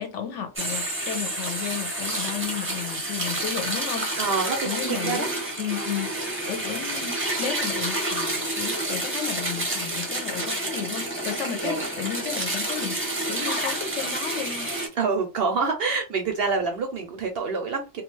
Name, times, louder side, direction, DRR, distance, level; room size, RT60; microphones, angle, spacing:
voice 1, 0.0-6.1 6.5-14.7, left 8 dB, 70° left, 0.9 m, -33 dB
sound 1, 0.6-14.9, right 1 dB, 15° right, 0.5 m, -29 dB
voice 2, 4.2-5.3 11.6-11.8 15.0-18.0, right 4 dB, 65° right, 0.6 m, -27 dB
2.4 x 2.3 x 3.0 m
omnidirectional pair, 1.3 m